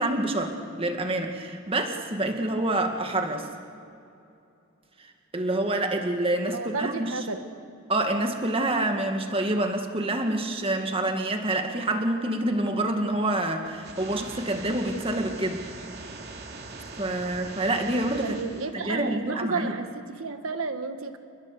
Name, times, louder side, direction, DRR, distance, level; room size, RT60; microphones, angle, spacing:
voice 1, 0.0-3.5 5.0-7.3 7.9-15.7 17.0-18.4 18.7-19.7, right 1 dB, 25° right, 4 dB, 2.1 m, -27 dB
voice 2, 6.5-7.4 18.2-19.9 20.2-21.2, right 4 dB, 75° right, 8 dB, 1.6 m, -32 dB
sound 1, 13.6-18.6, right 3 dB, 45° right, 3.3 m, -41 dB
29.5 x 20.5 x 6.9 m, 2.7 s
head